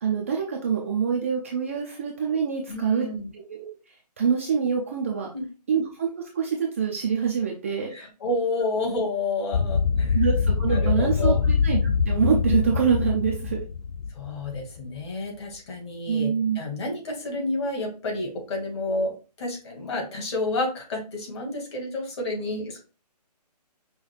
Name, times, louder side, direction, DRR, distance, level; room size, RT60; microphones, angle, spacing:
voice 1, 0.0-3.1 3.3-5.3 5.7-7.9 10.1-13.6 16.1-16.6, right 7 dB, 20° right, -1 dB, 0.4 m, -25 dB
voice 2, 2.7-3.3 5.3-5.4 7.9-10.2 10.7-11.4 14.1-22.8, left 2 dB, 40° left, 0 dB, 1.7 m, -30 dB
sound 1, 9.5-14.6, left 5 dB, 85° left, 0.4 m, -24 dB
5.5 x 2.2 x 3.2 m, 0.33 s
hypercardioid pair, 155°, 21 cm